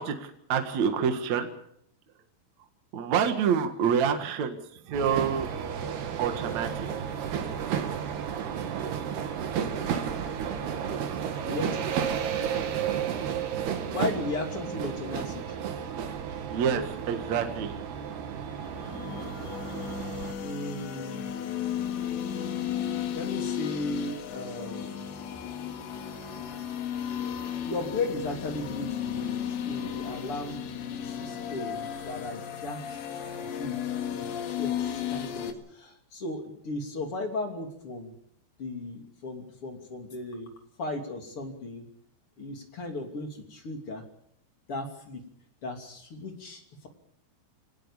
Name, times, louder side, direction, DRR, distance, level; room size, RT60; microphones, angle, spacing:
voice 1, 0.0-1.5 2.9-4.6 4.9-5.5 6.2-7.1 16.5-17.7, right 7 dB, 50° right, 7 dB, 2.5 m, -27 dB
sound 1, 4.9-20.3, right 8 dB, 70° right, 3.8 m, -32 dB
voice 2, 11.4-11.8 13.9-15.4 20.4-21.3 23.1-25.0 27.7-30.6 31.0-33.0 33.4-33.8 34.1-38.1 38.6-40.5 40.8-41.8 42.4-44.0 44.7-45.2 45.6-46.9, left 2 dB, 35° left, 4 dB, 3.3 m, -36 dB
sound 2, 18.6-35.5, left 9 dB, 90° left, 4.2 m, -34 dB
24.5 x 19.0 x 7.2 m, 0.69 s
omnidirectional pair, 4.9 m